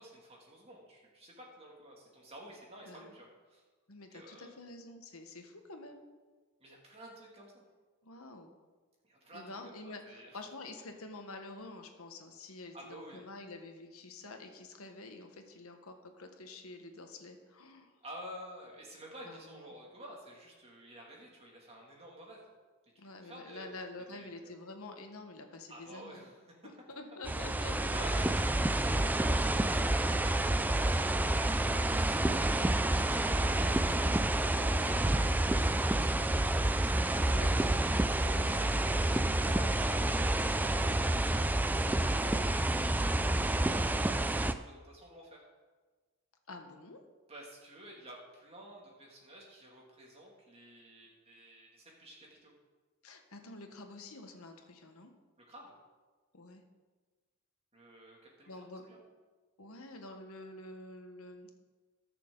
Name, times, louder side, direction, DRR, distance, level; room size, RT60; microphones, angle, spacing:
voice 1, 0.0-3.6 4.1-4.5 6.6-7.6 9.0-10.4 12.7-13.2 18.0-22.4 23.2-23.7 24.1-24.5 25.7-26.6 27.9-29.7 31.5-32.6 33.0-34.4 38.1-41.0 41.5-45.4 47.3-52.5 55.5-55.7 57.7-58.5 58.9-59.0, equal, 30° right, -2 dB, 2.5 m, -51 dB
voice 2, 3.9-6.0 8.0-8.5 9.3-17.9 19.2-19.6 23.0-26.3 26.6-28.3 30.1-31.6 37.3-37.6 46.5-47.0 53.0-55.1 56.3-56.6 58.5-58.8 59.6-61.5, left 2 dB, 80° left, 5 dB, 1.3 m, -48 dB
sound 1, 27.3-44.5, right 1 dB, 10° right, 0.3 m, -29 dB
20.0 x 6.7 x 3.9 m, 1.4 s
head